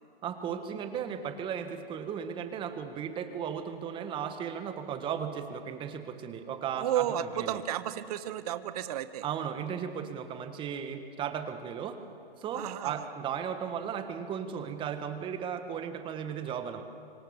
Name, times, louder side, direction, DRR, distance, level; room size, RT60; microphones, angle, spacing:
voice 1, 0.2-7.1 7.4-7.6 9.2-12.0 12.4-16.8, right 8 dB, 15° right, 9 dB, 1.4 m, -36 dB
voice 2, 6.7-9.2 12.5-13.1, right 11 dB, 40° right, 13 dB, 1.1 m, -32 dB
25.5 x 25.0 x 7.2 m, 2.5 s
hypercardioid pair, 140°, 29 cm